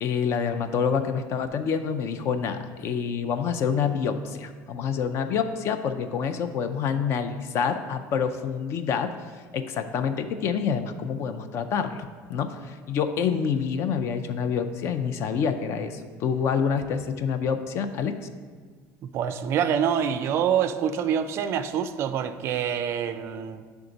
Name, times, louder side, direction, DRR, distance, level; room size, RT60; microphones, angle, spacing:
voice 1, 0.0-9.1 9.5-18.3, left 6 dB, 45° left, 9 dB, 0.4 m, -27 dB
voice 2, 19.0-23.7, right 8 dB, 40° right, 10 dB, 0.3 m, -26 dB
10.5 x 3.5 x 3.9 m, 1.6 s
cardioid pair, 170°, 7 cm